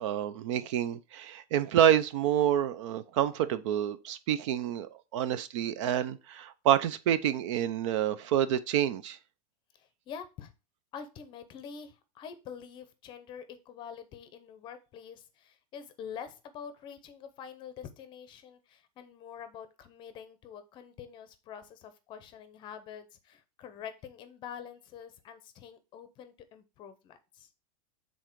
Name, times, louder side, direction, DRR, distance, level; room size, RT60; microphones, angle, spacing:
voice 1, 0.0-9.2, right 10 dB, 50° right, 0.5 m, -28 dB
voice 2, 9.7-10.5 10.9-27.5, left 7 dB, 25° left, 0.7 m, -46 dB
7.1 x 3.8 x 4.6 m
supercardioid pair, 165°, 20 cm